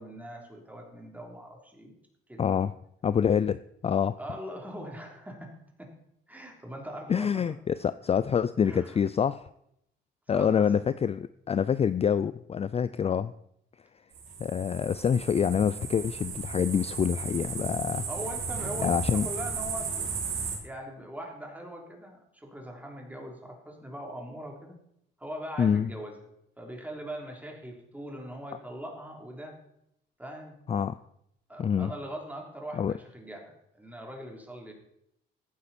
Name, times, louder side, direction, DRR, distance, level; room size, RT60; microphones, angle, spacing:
voice 1, 0.0-1.9 2.3-2.5 4.2-5.9 6.3-7.6 8.6-9.0 10.3-10.7 18.1-20.2 20.6-24.8 25.2-26.2 26.6-29.6 30.2-30.6 31.5-34.7, equal, 10° right, 1 dB, 3.4 m, -41 dB
voice 2, 2.4-2.7 3.0-4.2 7.1-9.5 10.3-13.3 14.4-18.0 18.8-19.3 25.6-25.9 30.7-31.0 31.6-31.9 32.7-32.9, left 7 dB, 30° left, 15 dB, 0.4 m, -26 dB
sound 1, 14.1-20.6, right 5 dB, 90° right, 2.8 m, -35 dB
14.5 x 9.6 x 4.3 m, 0.76 s
cardioid pair, 90°, 20 cm